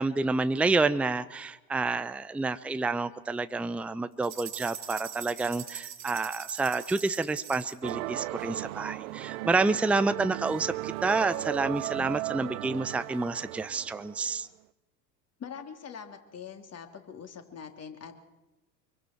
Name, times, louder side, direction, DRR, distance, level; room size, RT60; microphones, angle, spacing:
voice 1, 0.0-14.5, right 3 dB, 5° right, 12 dB, 0.7 m, -29 dB
sound 1, 4.2-7.9, right 9 dB, 35° right, 2.5 m, -42 dB
sound 2, 7.8-14.4, right 18 dB, 60° right, 0.9 m, -36 dB
voice 2, 15.4-18.2, left 7 dB, 30° left, 5 dB, 3.4 m, -43 dB
25.5 x 24.0 x 4.6 m, 1.0 s
hypercardioid pair, 80°, 49 cm